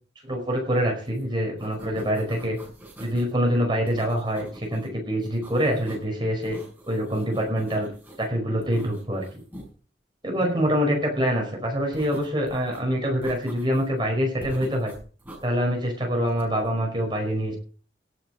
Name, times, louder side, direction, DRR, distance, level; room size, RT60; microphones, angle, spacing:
voice 1, 0.2-2.6 3.0-6.6 6.9-7.9 8.2-9.2 10.2-14.9 15.4-17.6, equal, 25° right, 1 dB, 5.0 m, -25 dB
sound 1, 1.1-1.2 1.5-3.3 3.9-4.9 5.2-6.1 6.4-8.3 8.6-9.7 11.9-12.8 13.2-14.0 14.4-15.5 16.3-16.7, right 1 dB, 10° right, 6.2 m, -44 dB
17.5 x 8.0 x 5.1 m, 0.41 s
head